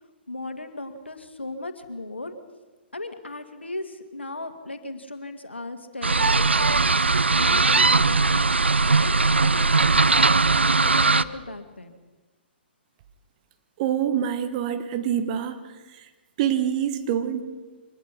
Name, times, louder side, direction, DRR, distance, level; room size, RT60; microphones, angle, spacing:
voice 1, 0.3-2.3 2.9-6.8 7.3-8.6 9.0-9.1 9.4-11.9, left 2 dB, 85° left, 8 dB, 2.1 m, -36 dB
sound 1, 6.0-11.2, right 3 dB, 80° right, 0.6 m, -19 dB
voice 2, 13.8-15.6 16.4-17.4, right 9 dB, 40° right, 9 dB, 1.7 m, -25 dB
24.0 x 20.0 x 5.8 m, 1.3 s
figure-of-eight pair, 120°, 6 cm